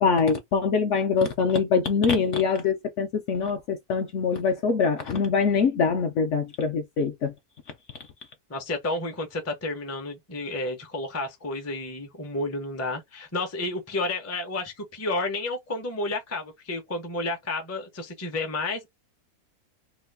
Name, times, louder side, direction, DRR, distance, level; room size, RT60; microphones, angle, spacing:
voice 1, 0.0-7.3, left 5 dB, 70° left, 0.7 m, -24 dB
voice 2, 8.5-18.9, left 2 dB, 25° left, 0.3 m, -31 dB
3.0 x 2.2 x 3.4 m
omnidirectional pair, 1.6 m